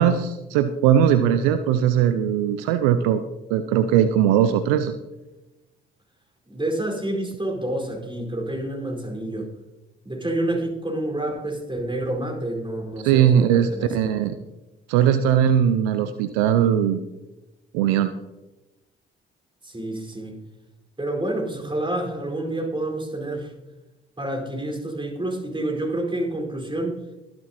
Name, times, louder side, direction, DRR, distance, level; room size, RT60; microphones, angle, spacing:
voice 1, 0.0-3.2 3.5-4.9 13.0-14.4 14.9-17.0 17.7-18.1, right 9 dB, 75° right, 11 dB, 0.6 m, -19 dB
voice 2, 6.5-9.5 10.0-14.1 19.6-20.3 21.0-23.5 24.2-27.0, right 1 dB, 15° right, 0 dB, 4.9 m, -28 dB
23.0 x 7.7 x 3.0 m, 1.0 s
hypercardioid pair, 45°, 30 cm